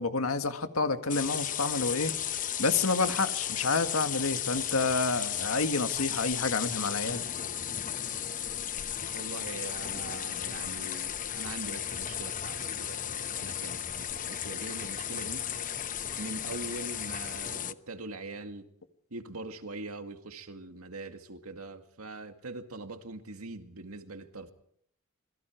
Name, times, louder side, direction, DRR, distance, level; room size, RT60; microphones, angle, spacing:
voice 1, 0.0-2.1 2.6-7.3, left 3 dB, 85° left, 1.9 m, -29 dB
sound 1, 1.1-17.7, left 9 dB, 40° left, 0.8 m, -34 dB
voice 2, 9.1-13.0 13.3-15.4 16.2-18.7 19.1-24.5, right 2 dB, 85° right, 2.2 m, -42 dB
26.5 x 22.0 x 4.6 m
head